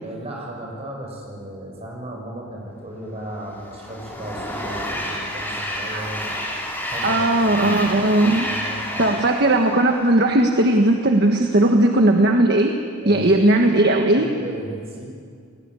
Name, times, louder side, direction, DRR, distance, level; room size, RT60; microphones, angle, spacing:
voice 1, 0.0-6.4 6.9-9.1 13.0-13.3 14.2-15.1, right 1 dB, 30° right, 0 dB, 7.0 m, -35 dB
Train, 3.2-10.6, equal, 10° left, 5.9 m, -30 dB
voice 2, 7.0-8.5 9.0-12.7 13.1-14.3, right 1 dB, 45° right, 3 dB, 1.5 m, -17 dB
29.5 x 20.5 x 9.8 m, 2.1 s
head